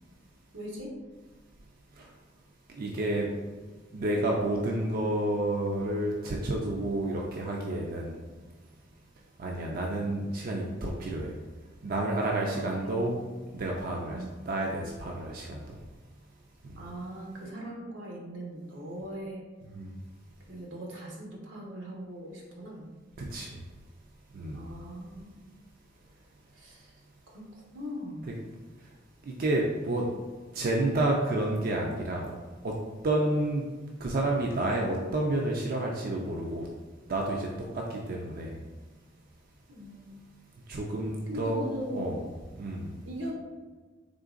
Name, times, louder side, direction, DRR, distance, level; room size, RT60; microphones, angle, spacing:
voice 1, 0.5-1.0 12.5-13.1 14.1-14.3 16.8-19.4 20.5-22.9 24.5-25.4 26.5-27.0 27.3-28.4 39.7-40.2 41.3-42.2 43.0-43.3, equal, 85° right, -2 dB, 1.0 m, -40 dB
voice 2, 2.7-3.3 3.9-8.2 9.4-11.3 11.8-13.2 13.5-15.8 16.6-16.8 19.7-20.0 23.2-23.6 24.3-24.7 28.8-29.0 29.2-30.1 30.5-32.4 32.6-32.7 33.0-33.7 34.0-36.7 37.1-37.5 37.7-38.6 40.7-41.6 41.9-42.2 42.6-43.0, right 1 dB, 50° right, -1 dB, 0.4 m, -30 dB
3.7 x 3.7 x 2.4 m, 1.4 s
head